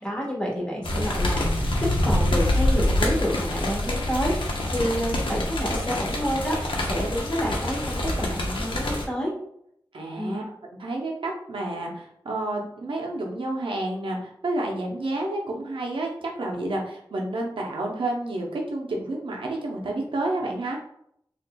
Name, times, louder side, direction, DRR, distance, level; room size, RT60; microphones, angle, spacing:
voice 1, 0.0-1.5 1.8-9.3 10.2-10.4, equal, 10° left, -3 dB, 1.3 m, -29 dB
sound 1, 0.8-9.1, left 1 dB, 75° left, 0.6 m, -25 dB
voice 2, 9.9-10.4 10.8-20.8, right 2 dB, 85° right, -1 dB, 0.7 m, -30 dB
3.9 x 2.5 x 2.2 m, 0.73 s
wide cardioid pair, 55°, 9 cm